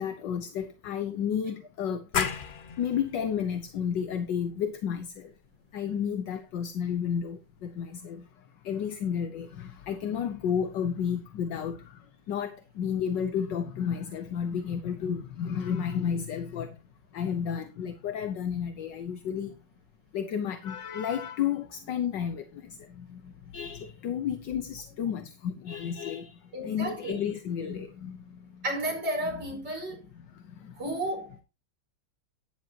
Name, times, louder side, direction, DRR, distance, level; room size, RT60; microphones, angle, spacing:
voice 1, 0.0-2.3 2.8-5.3 5.7-8.3 8.6-16.8 17.1-19.6 20.1-28.6 29.2-29.6 30.1-30.8, left 8 dB, 70° left, 1.6 m, -32 dB
sound 1, 2.1-7.5, left 6 dB, 55° left, 0.5 m, -37 dB
voice 2, 26.5-27.2 28.6-30.0 30.8-31.4, right 1 dB, 65° right, 5.7 m, -32 dB
13.0 x 10.5 x 2.9 m
omnidirectional pair, 2.1 m